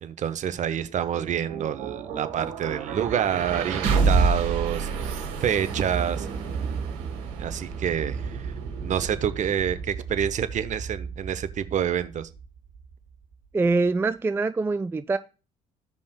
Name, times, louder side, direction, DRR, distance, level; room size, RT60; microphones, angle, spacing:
voice 1, 0.0-6.3 7.4-8.5 8.8-12.3, right 9 dB, 45° right, 0.8 m, -28 dB
sound 1, 0.9-12.9, right 5 dB, 65° right, 1.6 m, -29 dB
voice 2, 13.5-15.2, right 3 dB, 15° right, 0.3 m, -24 dB
15.0 x 5.3 x 2.3 m
figure-of-eight pair, 55°, 18 cm